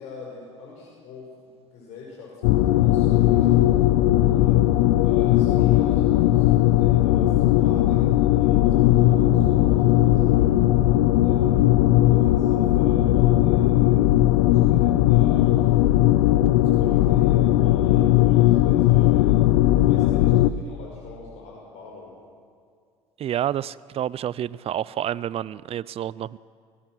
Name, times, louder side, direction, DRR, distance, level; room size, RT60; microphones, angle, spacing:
voice 1, 0.0-3.7 4.2-4.6 5.0-10.6 11.1-11.8 12.1-14.1 14.3-15.7 16.6-19.5 19.8-22.1, left 4 dB, 55° left, -3 dB, 5.5 m, -43 dB
sound 1, 2.4-20.5, left 14 dB, 75° left, 0.7 m, -18 dB
voice 2, 23.2-26.4, right 11 dB, 40° right, 21 dB, 0.5 m, -29 dB
28.0 x 17.5 x 6.2 m, 2.2 s
hypercardioid pair, 75°, 15 cm